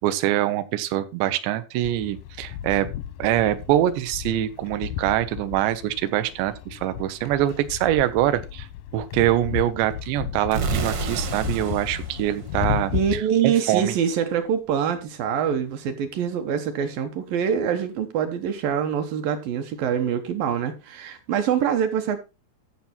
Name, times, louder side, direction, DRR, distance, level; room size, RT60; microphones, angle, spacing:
voice 1, 0.0-2.9 3.2-8.7 8.9-13.9, right 13 dB, 85° right, 3.1 m, -24 dB
sound 1, 1.8-13.2, left 11 dB, 80° left, 1.9 m, -34 dB
sound 2, 10.5-13.4, right 4 dB, 55° right, 1.6 m, -30 dB
voice 2, 12.9-22.2, right 8 dB, 70° right, 2.3 m, -25 dB
14.0 x 6.0 x 4.2 m
omnidirectional pair, 4.9 m